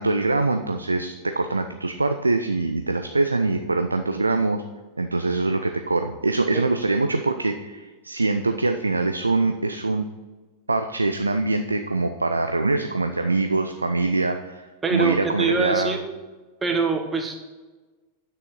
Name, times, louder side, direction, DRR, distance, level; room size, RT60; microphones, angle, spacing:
voice 1, 0.0-4.6 5.0-10.1 10.7-16.0, right 3 dB, 80° right, 7 dB, 0.4 m, -24 dB
voice 2, 14.8-16.0 16.6-17.4, right 4 dB, 15° right, 3 dB, 1.4 m, -24 dB
9.7 x 6.2 x 4.4 m, 1.3 s
figure-of-eight pair, 90°, 0 cm